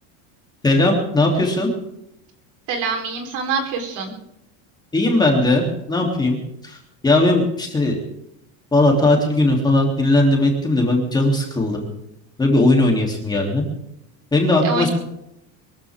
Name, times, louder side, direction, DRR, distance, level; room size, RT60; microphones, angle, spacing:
voice 1, 0.6-1.7 4.9-6.4 6.6-6.8 7.0-8.0 8.7-11.8 12.4-13.6 14.3-14.9, left 2 dB, 10° left, 0 dB, 3.0 m, -18 dB
voice 2, 2.7-4.1 14.6-14.9, right 4 dB, 55° right, 4 dB, 4.1 m, -25 dB
23.0 x 15.0 x 3.7 m, 0.82 s
cardioid pair, 165°, 38 cm